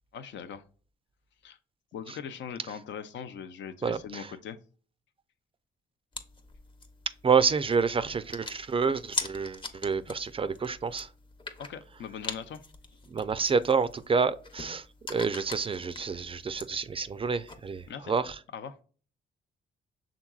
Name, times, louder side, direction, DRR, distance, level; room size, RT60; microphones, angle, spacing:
voice 1, 0.1-0.6 1.4-1.6 1.9-4.6 11.6-12.6 17.9-18.1 18.5-18.8, left 7 dB, 75° left, 0.6 m, -40 dB
voice 2, 3.8-4.3 7.2-11.1 13.1-18.4, right 5 dB, 30° right, 0.4 m, -28 dB
sound 1, 6.1-17.9, left 3 dB, 25° left, 0.8 m, -43 dB
5.9 x 3.7 x 2.3 m
cardioid pair, 80°, 19 cm